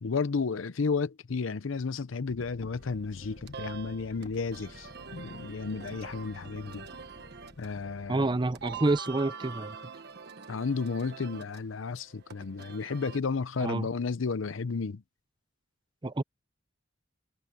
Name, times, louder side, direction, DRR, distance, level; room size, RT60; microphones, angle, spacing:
voice 1, 0.0-6.9 7.6-8.3 10.5-15.0, left 4 dB, 80° left, 0.6 m, -32 dB
sound 1, 2.2-9.0, left 1 dB, 40° left, 1.0 m, -52 dB
sound 2, 2.8-13.2, right 5 dB, 55° right, 1.3 m, -45 dB
voice 2, 8.1-9.8 13.6-13.9 16.0-16.2, right 2 dB, 25° right, 0.6 m, -28 dB
head